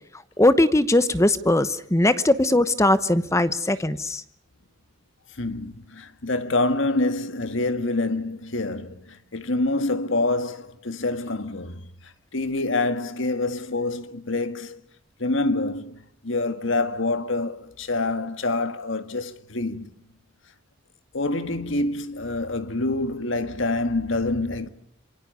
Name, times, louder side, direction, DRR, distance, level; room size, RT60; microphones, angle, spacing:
voice 1, 0.4-4.2, left 1 dB, 15° left, 0.9 m, -20 dB
voice 2, 5.4-14.8 15.2-19.9 21.1-24.7, left 2 dB, 70° left, 1.8 m, -26 dB
27.5 x 24.0 x 6.8 m
head